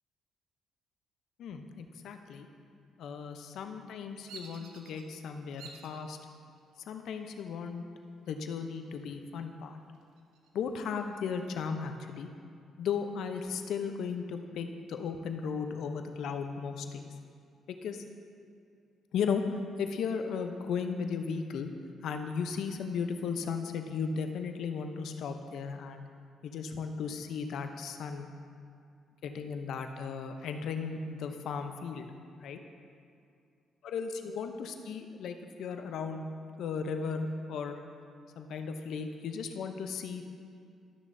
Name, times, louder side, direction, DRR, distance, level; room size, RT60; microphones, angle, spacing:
voice 1, 1.4-2.5 3.0-6.2 6.9-7.8 8.3-9.8 10.5-12.3 12.8-17.1 17.8-18.0 19.1-19.4 19.8-21.7 22.0-26.1 26.4-28.3 29.2-32.1 32.4-32.6 33.8-36.2 36.6-37.8 38.4-40.2, left 6 dB, 75° left, 6 dB, 0.6 m, -36 dB
Bird vocalization bird call bird song, 4.3-5.0 5.6-6.0 6.6-7.1 8.3-9.0 9.4-9.5 9.9-11.3, right 5 dB, 90° right, 0.7 m, -51 dB
12.0 x 6.3 x 2.6 m, 2.4 s
cardioid pair, 90°, 0 cm